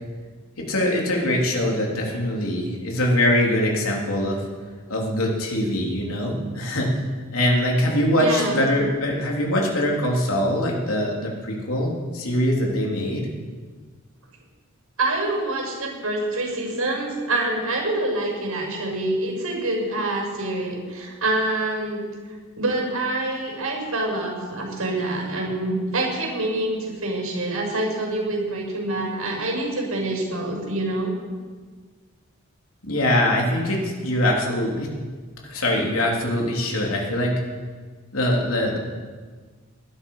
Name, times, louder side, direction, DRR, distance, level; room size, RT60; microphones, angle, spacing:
voice 1, 0.6-4.4 4.9-7.0 7.3-13.3 32.8-34.9 35.4-37.3 38.1-38.8, left 1 dB, 80° left, -1 dB, 3.3 m, -23 dB
voice 2, 8.1-8.6 15.0-22.0 22.5-31.1, right 2 dB, 85° right, 0 dB, 6.5 m, -26 dB
19.5 x 11.5 x 5.6 m, 1.5 s
head